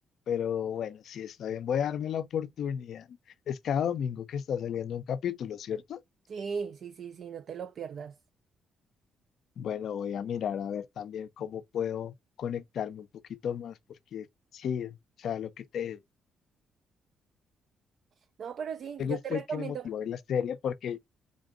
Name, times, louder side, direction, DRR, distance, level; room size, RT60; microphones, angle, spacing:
voice 1, 0.3-3.1 3.5-6.0 9.6-13.8 14.1-14.3 14.5-16.0 19.0-21.0, left 8 dB, 65° left, 0.4 m, -33 dB
voice 2, 6.3-8.2 18.4-19.9, right 6 dB, 60° right, 0.3 m, -37 dB
3.6 x 2.5 x 3.7 m
cardioid pair, 90°, 0 cm